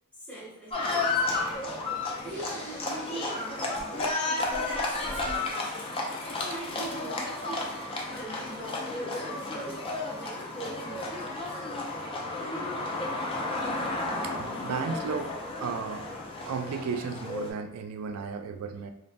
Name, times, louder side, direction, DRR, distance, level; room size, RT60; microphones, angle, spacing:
voice 1, 0.1-1.4 2.2-7.7 8.1-9.8 10.2-11.6, right 2 dB, 5° left, -7 dB, 0.7 m, -43 dB
Livestock farm animals working animals, 0.7-17.5, left 2 dB, 25° left, 0.4 m, -32 dB
Breathing, 2.1-4.1 4.4-5.5, left 1 dB, 45° left, 0.7 m, -45 dB
voice 2, 14.2-15.3 15.6-16.1 16.5-18.9, right 5 dB, 75° right, 8 dB, 0.3 m, -34 dB
3.0 x 2.1 x 2.5 m, 0.81 s
head